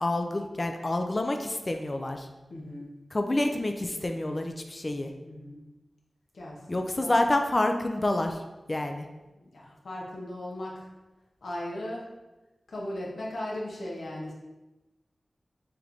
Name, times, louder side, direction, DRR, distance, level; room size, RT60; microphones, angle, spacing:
voice 1, 0.0-2.3 3.1-5.1 6.7-8.4 8.7-9.1, left 1 dB, 35° left, 5 dB, 0.3 m, -28 dB
voice 2, 2.5-2.9 5.2-5.6 6.3-7.1 9.3-10.9 11.4-12.1 12.7-14.3, left 1 dB, 80° left, -4 dB, 0.8 m, -37 dB
3.3 x 3.0 x 3.8 m, 1.1 s
wide cardioid pair, 95°, 0 cm